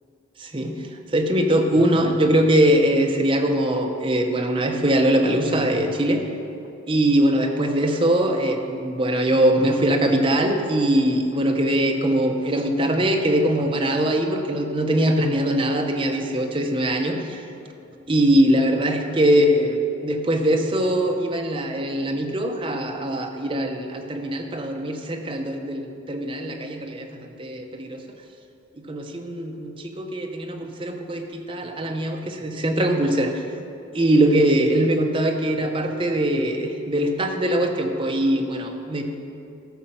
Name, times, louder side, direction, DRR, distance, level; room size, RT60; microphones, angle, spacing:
voice 1, 0.4-0.8 1.1-6.2 6.9-17.4 18.1-28.0 28.8-33.4 33.9-39.0, right 1 dB, 30° right, 3 dB, 0.8 m, -22 dB
13.0 x 6.4 x 5.7 m, 2.6 s
head